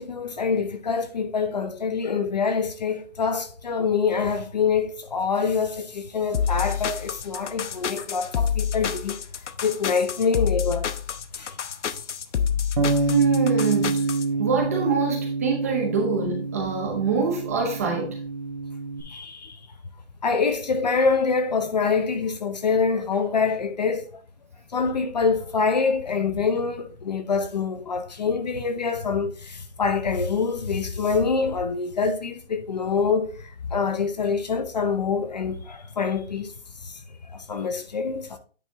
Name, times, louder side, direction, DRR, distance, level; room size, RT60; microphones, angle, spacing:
voice 1, 0.0-9.2 9.6-10.9 11.4-11.5 19.0-19.6 20.2-24.1 24.7-36.5 36.8-37.0 37.3-38.4, left 5 dB, 35° left, 0.6 m, -25 dB
sound 1, 6.3-14.2, left 8 dB, 80° left, 0.9 m, -28 dB
Bass guitar, 12.8-19.0, right 3 dB, 40° right, 1.2 m, -26 dB
voice 2, 13.1-14.0 14.4-18.2, right 5 dB, 15° right, 0.7 m, -25 dB
9.1 x 4.2 x 3.4 m
hypercardioid pair, 175°, 35 cm